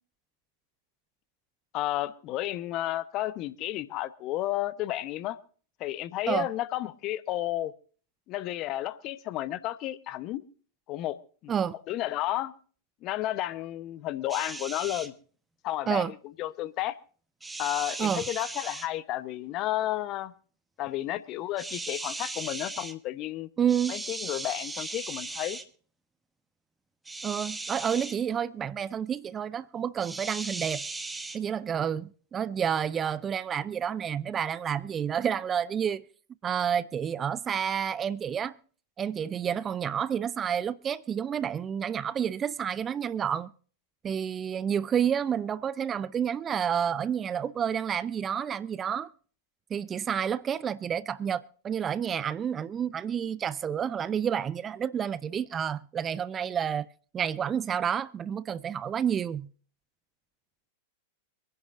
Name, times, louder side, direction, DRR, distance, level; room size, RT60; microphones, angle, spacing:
voice 1, 1.7-5.4 5.8-7.7 8.3-10.4 10.9-11.2 11.4-11.5 11.9-12.5 13.0-15.1 15.6-17.0 17.6-20.3 20.8-23.5 23.9-25.6, left 14 dB, 40° left, 0.9 m, -32 dB
sound 1, 14.3-15.1 17.4-18.9 21.6-22.9 23.7-25.6 27.0-28.2 30.0-31.4, right 3 dB, 10° right, 1.0 m, -37 dB
voice 2, 23.6-23.9 27.2-30.8 31.3-36.0 36.4-38.5 39.0-43.5 44.0-49.1 49.7-56.9 57.1-59.5, right 8 dB, 25° right, 0.5 m, -29 dB
25.5 x 10.5 x 2.5 m
hypercardioid pair, 100°, 0 cm